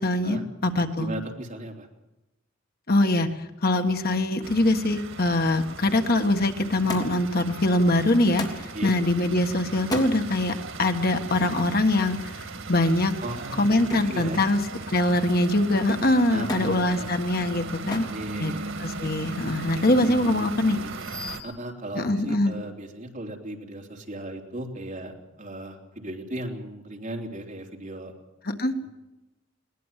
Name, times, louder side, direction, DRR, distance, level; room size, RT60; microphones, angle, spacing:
voice 1, 0.0-1.1 2.9-3.3 3.6-13.1 13.6-14.6 14.9-18.1 18.4-18.5 18.8-20.8 21.9-22.6 28.4-28.7, left 1 dB, 50° left, 7 dB, 1.6 m, -23 dB
voice 2, 1.0-1.9 8.7-8.9 13.2-14.4 16.3-17.2 18.1-18.7 19.0-19.1 19.7-20.9 21.4-28.1, right 1 dB, 40° right, 1 dB, 3.4 m, -37 dB
sound 1, 4.4-21.4, right 3 dB, 90° right, 1.9 m, -38 dB
Thump thud, 6.9-7.4 8.4-8.7 9.8-10.2 11.4-11.6 13.9-14.2 14.6-15.1 16.5-16.8 17.9-18.2 19.1-19.6 20.6-20.7, left 1 dB, 20° left, 3.2 m, -34 dB
21.5 x 19.5 x 7.5 m, 0.99 s
head